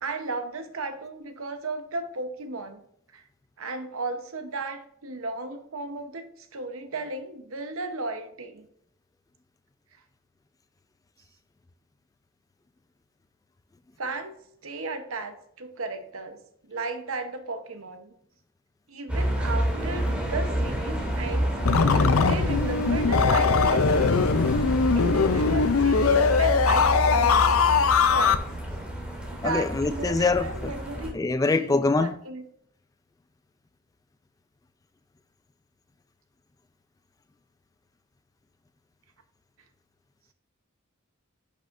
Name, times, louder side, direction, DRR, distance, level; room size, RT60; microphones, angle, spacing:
voice 1, 0.0-2.8 3.1-3.2 3.6-8.7 14.0-14.3 14.6-16.4 16.7-18.2 18.9-21.8 22.1-24.3 24.9-27.4 28.1-28.4 29.3-31.1 31.5-32.4, right 3 dB, 70° right, 1.0 m, -35 dB
sound 1, 19.1-31.1, right 1 dB, 5° right, 2.1 m, -29 dB
sound 2, 21.7-28.4, left 5 dB, 70° left, 0.6 m, -21 dB
voice 2, 29.4-30.5 31.1-32.1, left 3 dB, 15° left, 0.3 m, -23 dB
10.5 x 6.4 x 2.6 m
head